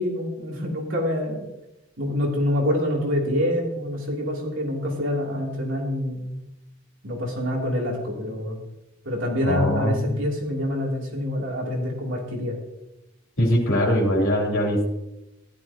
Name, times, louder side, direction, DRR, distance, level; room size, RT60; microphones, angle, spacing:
voice 1, 0.0-1.5 2.0-6.4 7.0-8.6 9.0-12.5, left 1 dB, 65° right, -2 dB, 2.9 m, -26 dB
voice 2, 9.4-10.2 13.4-14.9, equal, 75° left, -1 dB, 3.2 m, -22 dB
15.5 x 11.5 x 2.9 m, 0.94 s
head